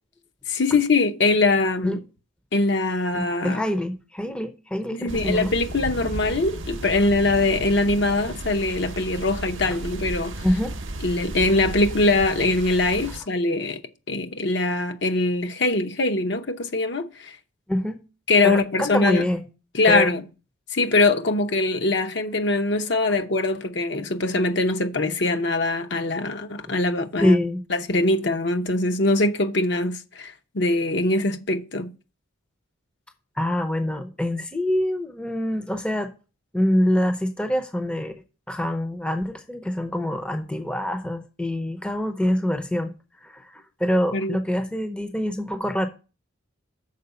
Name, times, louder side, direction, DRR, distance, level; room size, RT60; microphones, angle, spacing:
voice 1, 0.5-2.0 2.5-3.6 4.9-10.4 11.0-13.8 14.1-17.4 18.3-19.2 19.7-20.2 20.7-27.3 27.7-31.9 44.1-44.4, left 2 dB, 55° left, 0.8 m, -22 dB
voice 2, 3.1-5.5 10.4-10.7 17.7-18.0 18.4-19.4 19.9-20.1 27.2-27.6 33.4-36.1 36.5-38.2 38.5-42.9 43.2-45.9, left 1 dB, 5° left, 0.6 m, -25 dB
sound 1, 5.1-13.2, right 1 dB, 60° right, 0.8 m, -34 dB
6.6 x 4.6 x 6.8 m
head